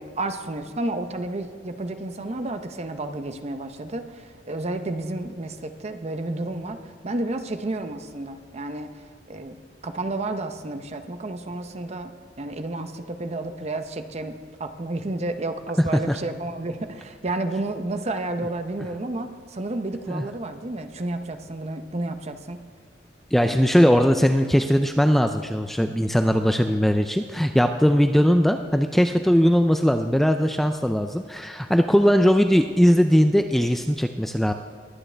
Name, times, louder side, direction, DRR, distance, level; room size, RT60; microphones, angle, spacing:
voice 1, 0.0-6.8 7.0-8.9 9.3-9.6 9.8-14.3 14.6-22.6 23.4-23.9, right 2 dB, 35° right, 8 dB, 0.7 m, -31 dB
voice 2, 23.3-34.5, equal, ahead, 6 dB, 0.3 m, -19 dB
21.0 x 8.7 x 3.3 m, 2.1 s
head